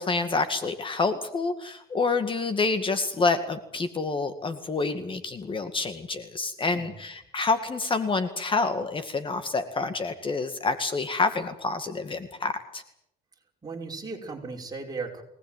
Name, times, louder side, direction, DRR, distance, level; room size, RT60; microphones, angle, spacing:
voice 1, 0.0-12.8, left 3 dB, 30° left, 9 dB, 2.1 m, -28 dB
voice 2, 13.6-15.2, right 4 dB, 20° right, 0 dB, 5.7 m, -36 dB
23.5 x 19.0 x 9.2 m, 0.76 s
cardioid pair, 110°, 17 cm